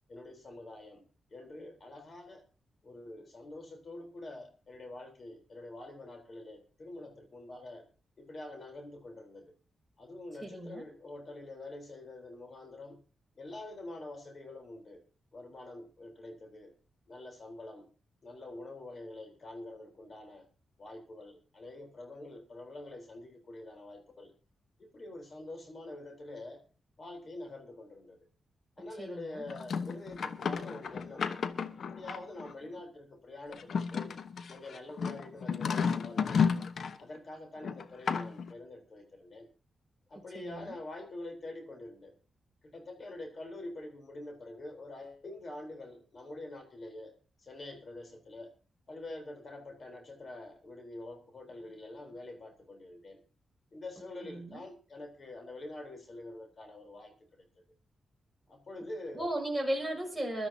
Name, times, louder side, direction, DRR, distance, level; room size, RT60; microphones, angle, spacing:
voice 1, 0.1-1.0 1.3-2.4 2.8-7.9 8.2-9.5 10.0-13.0 13.4-15.0 15.3-16.7 17.1-17.8 18.2-20.5 20.8-24.3 24.8-26.6 27.0-28.2 28.8-31.3 31.8-34.1 34.5-36.7 37.0-39.5 40.1-42.1 42.6-47.1 47.4-48.5 48.9-53.2 53.7-57.5 58.5-59.3, left 2 dB, 45° left, 5 dB, 3.7 m, -46 dB
voice 2, 10.4-10.9 29.0-29.4 40.3-40.7 54.2-54.6 59.1-60.5, right 1 dB, 5° left, 2 dB, 5.8 m, -35 dB
sound 1, 29.5-32.5 33.5-37.0 37.6-38.5, left 6 dB, 65° left, 1.0 m, -33 dB
22.5 x 12.5 x 2.8 m, 0.34 s
cardioid pair, 80°, 0 cm